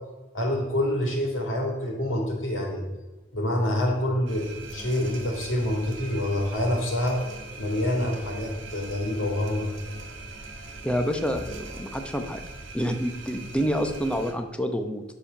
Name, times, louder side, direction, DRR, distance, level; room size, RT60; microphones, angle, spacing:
voice 1, 0.3-2.8 3.3-7.2 7.6-9.7, left 1 dB, 90° left, 0 dB, 3.2 m, -26 dB
sound 1, 4.3-14.3, right 3 dB, 70° right, 2.1 m, -41 dB
voice 2, 10.8-12.5 12.7-15.1, equal, 5° left, 5 dB, 0.8 m, -28 dB
9.9 x 7.1 x 5.8 m, 1.2 s
head